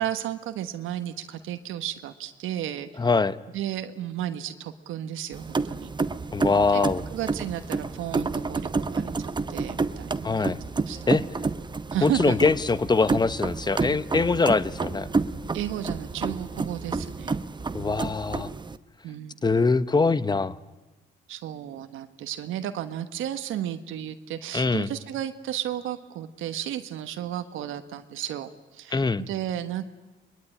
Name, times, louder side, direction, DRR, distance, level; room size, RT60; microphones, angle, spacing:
voice 1, 0.0-2.9 3.5-5.9 6.7-6.8 7.1-10.5 10.9-11.1 11.9-12.4 15.5-17.4 19.0-19.4 21.3-29.8, right 11 dB, 85° right, 8 dB, 1.3 m, -33 dB
voice 2, 3.0-3.4 6.3-7.0 10.2-10.6 11.1-11.2 12.0-15.1 17.7-18.5 19.4-20.6 24.5-24.9 28.9-29.2, left 4 dB, 20° left, 15 dB, 0.9 m, -23 dB
sound 1, 5.3-18.8, right 4 dB, 20° right, 0.9 m, -30 dB
23.5 x 21.5 x 9.9 m, 1.1 s
cardioid pair, 90°, 20 cm